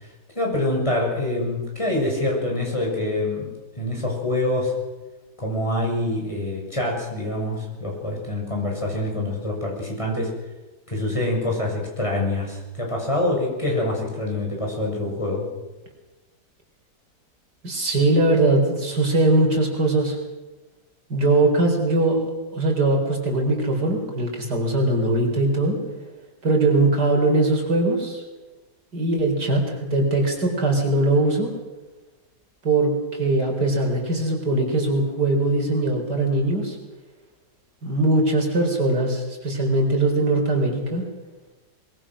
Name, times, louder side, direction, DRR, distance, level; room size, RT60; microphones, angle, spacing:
voice 1, 0.3-4.7 5.4-10.3 10.9-15.5, left 1 dB, 20° left, -1 dB, 6.7 m, -25 dB
voice 2, 17.6-20.2 21.1-22.2 22.5-25.8 26.4-28.2 28.9-31.5 32.6-36.8 37.8-41.0, right 2 dB, 80° right, 2 dB, 5.0 m, -21 dB
23.5 x 22.0 x 6.3 m, 1.2 s
omnidirectional pair, 1.8 m